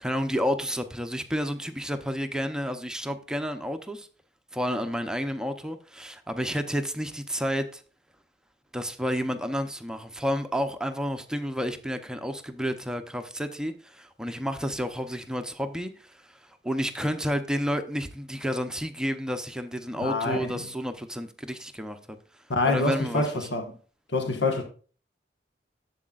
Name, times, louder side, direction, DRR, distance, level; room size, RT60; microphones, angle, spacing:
voice 1, 0.0-4.1 4.5-7.8 8.7-16.4 16.6-22.2 22.7-23.5, equal, 5° right, 0.6 m, -30 dB
voice 2, 20.0-20.5 22.5-23.6 24.1-24.6, left 2 dB, 80° left, 1.4 m, -26 dB
11.5 x 7.6 x 2.4 m
head